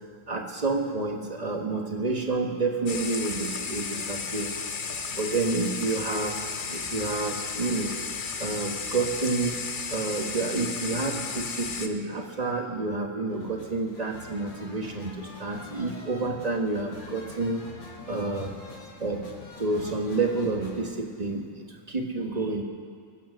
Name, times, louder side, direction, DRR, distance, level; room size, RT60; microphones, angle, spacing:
voice 1, 0.3-4.5 5.1-7.9 8.4-9.6 9.9-17.6 18.1-18.5 19.0-19.2 19.6-21.5 21.9-22.6, right 3 dB, 25° right, 2 dB, 1.2 m, -29 dB
sound 1, 2.9-11.9, left 5 dB, 65° left, 0.5 m, -34 dB
sound 2, 13.3-20.9, left 3 dB, 85° left, 2.9 m, -45 dB
22.0 x 9.2 x 6.3 m, 2.2 s
omnidirectional pair, 2.0 m